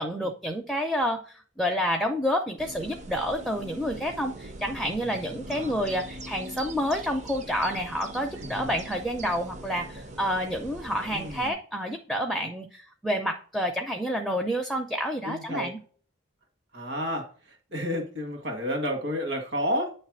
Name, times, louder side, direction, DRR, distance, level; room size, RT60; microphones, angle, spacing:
voice 1, 0.0-15.8, equal, ahead, 3 dB, 0.5 m, -29 dB
sound 1, 2.6-11.5, right 1 dB, 35° right, 0.7 m, -42 dB
voice 2, 8.4-8.7 11.1-11.6 15.3-15.7 16.7-19.9, equal, 60° right, 3 dB, 1.8 m, -31 dB
9.2 x 3.3 x 6.1 m, 0.43 s
head